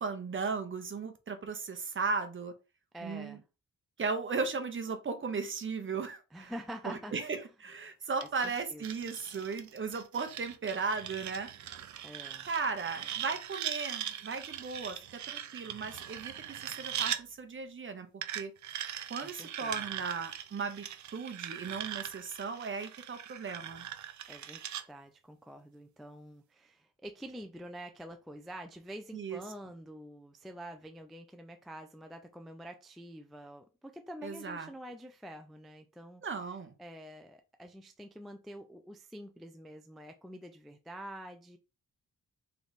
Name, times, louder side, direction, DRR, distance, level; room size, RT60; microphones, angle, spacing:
voice 1, 0.0-2.5 3.0-3.4 4.0-6.5 6.8-11.7 12.5-15.0 15.3-18.1 18.3-18.5 19.1-20.8 21.1-23.8 29.1-29.4 34.2-34.7 36.2-36.7, right 4 dB, 40° right, 0.8 m, -36 dB
voice 2, 2.9-3.4 6.3-7.1 8.2-8.8 12.0-12.5 19.2-19.8 24.3-36.3 36.8-41.6, equal, ahead, 0.3 m, -47 dB
sound 1, 8.2-17.2 18.2-24.8, right 10 dB, 60° right, 0.5 m, -40 dB
3.3 x 3.0 x 4.0 m
wide cardioid pair, 130°, 32 cm